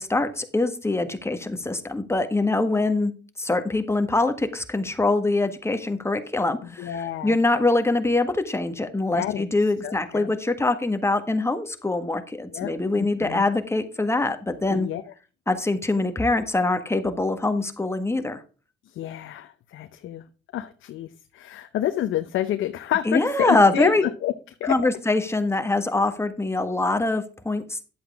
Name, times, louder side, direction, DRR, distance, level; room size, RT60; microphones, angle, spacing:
voice 1, 0.0-3.1 3.4-14.9 15.5-18.4 23.0-24.0 24.6-27.8, left 2 dB, 15° left, 7 dB, 1.6 m, -24 dB
voice 2, 6.8-7.4 9.1-9.4 9.8-10.3 12.5-12.7 13.0-13.5 14.7-15.0 18.9-20.2 20.5-24.3 24.6-24.8, left 12 dB, 80° left, 8 dB, 0.8 m, -29 dB
11.5 x 7.8 x 3.6 m, 0.35 s
cardioid pair, 90°, 20 cm